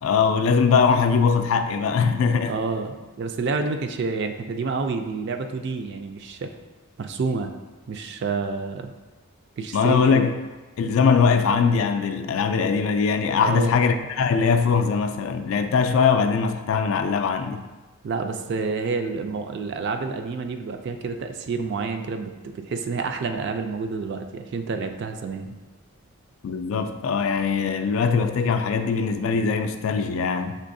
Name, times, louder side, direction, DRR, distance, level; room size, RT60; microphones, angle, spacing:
voice 1, 0.0-2.6 9.7-10.4 10.8-17.6 26.4-30.6, left 5 dB, 65° left, 0.3 m, -21 dB
voice 2, 2.5-6.5 7.0-7.5 7.9-8.9 9.6-10.3 13.4-13.8 18.0-25.6, right 4 dB, 50° right, 0.3 m, -29 dB
5.4 x 3.4 x 2.6 m
head